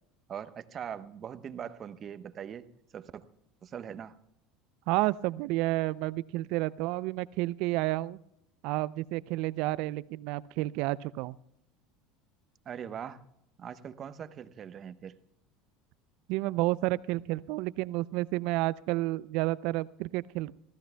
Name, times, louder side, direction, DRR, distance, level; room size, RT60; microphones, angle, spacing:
voice 1, 0.3-2.7 2.9-3.2 3.6-4.1 12.6-13.2 13.6-15.2, right 8 dB, 40° right, 12 dB, 0.9 m, -41 dB
voice 2, 4.9-8.2 8.6-11.4 16.3-20.5, right 19 dB, 65° right, 19 dB, 0.4 m, -30 dB
25.5 x 15.0 x 2.3 m, 0.78 s
hypercardioid pair, 80°, 0 cm